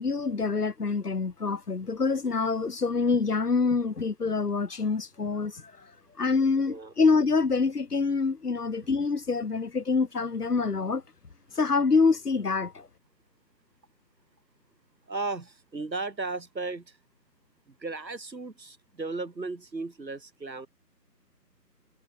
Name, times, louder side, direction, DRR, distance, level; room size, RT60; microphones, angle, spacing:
voice 1, 0.0-5.9 6.2-11.0 11.5-12.9, left 4 dB, 65° left, 6.3 m, -26 dB
voice 2, 15.1-17.0 17.7-20.7, right 3 dB, 85° right, 6.8 m, -35 dB
figure-of-eight pair, 165°, 50 cm